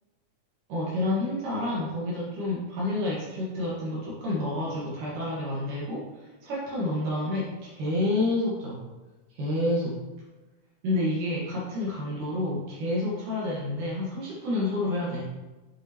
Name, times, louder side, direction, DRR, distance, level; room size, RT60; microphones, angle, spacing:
voice 1, 0.7-8.8 9.3-10.0 10.8-15.2, left 1 dB, 75° right, -7 dB, 3.2 m, -29 dB
8.1 x 7.5 x 3.0 m, 1.1 s
omnidirectional pair, 3.7 m